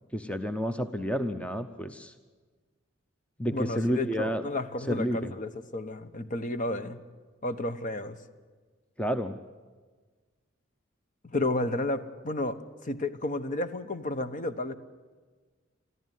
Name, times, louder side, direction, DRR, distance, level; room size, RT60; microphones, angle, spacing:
voice 1, 0.1-2.1 3.4-4.4 4.9-5.3 9.0-9.4, equal, 5° left, 8 dB, 0.7 m, -30 dB
voice 2, 3.5-7.0 7.4-8.2 11.2-14.7, left 2 dB, 40° left, 10 dB, 1.0 m, -32 dB
22.5 x 14.0 x 9.3 m, 1.4 s
head